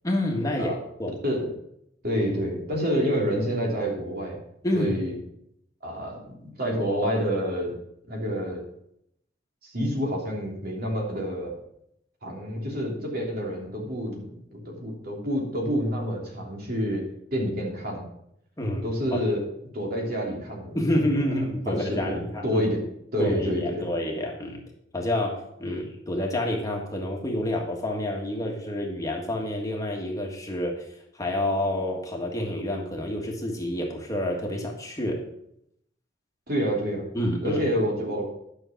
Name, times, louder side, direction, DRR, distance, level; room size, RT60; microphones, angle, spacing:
voice 1, 0.0-0.7 1.0-1.1 4.6-5.0 18.6-18.9 19.1-19.2 20.7-22.6 23.2-24.6 24.9-30.8 31.2-35.2 37.1-37.6, left 1 dB, 20° left, 0 dB, 1.6 m, -28 dB
voice 2, 2.0-4.4 4.7-5.1 5.8-7.7 8.1-8.6 9.6-11.5 12.2-17.0 17.3-18.1 18.8-19.4 19.7-21.1 21.7-22.8 23.1-23.8 25.7-25.8 36.5-37.1 37.4-38.2, equal, 55° right, -1 dB, 3.2 m, -28 dB
11.0 x 6.4 x 5.9 m, 0.75 s
head